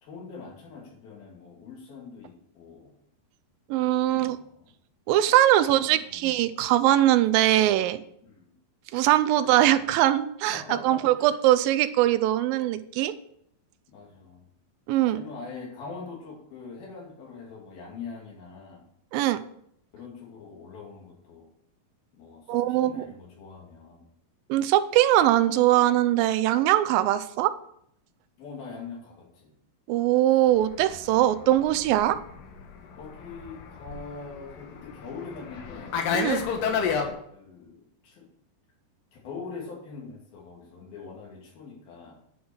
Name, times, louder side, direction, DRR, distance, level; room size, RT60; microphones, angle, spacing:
voice 1, 0.0-3.0 4.0-4.7 5.6-6.3 8.2-8.5 9.4-9.8 10.5-11.3 13.9-14.5 15.0-18.8 19.9-21.5 22.1-24.1 28.4-29.5 33.0-36.0 36.7-38.3 39.1-42.2, left 4 dB, 90° left, -2 dB, 4.4 m, -43 dB
voice 2, 3.7-4.4 5.1-8.0 8.9-13.1 14.9-15.2 19.1-19.4 22.5-23.0 24.5-27.5 29.9-32.2 36.1-36.5, right 13 dB, 85° right, 12 dB, 2.3 m, -22 dB
Fixed-wing aircraft airplane, 30.6-37.1, left 6 dB, 75° left, 2.7 m, -31 dB
10.5 x 5.5 x 7.0 m, 0.70 s
omnidirectional pair, 4.1 m